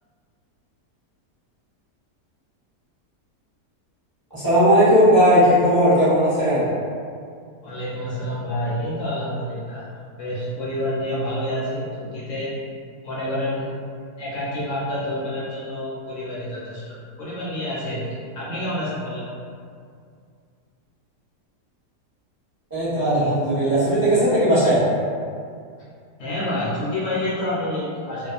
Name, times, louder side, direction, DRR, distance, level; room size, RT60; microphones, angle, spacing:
voice 1, 4.3-6.7 22.7-24.8, equal, 15° right, -15 dB, 0.8 m, -17 dB
voice 2, 7.6-9.9 10.2-12.5 13.0-13.7 14.2-19.3 26.2-28.3, left 1 dB, 70° left, -8 dB, 0.7 m, -28 dB
2.6 x 2.3 x 2.4 m, 2.2 s
omnidirectional pair, 1.7 m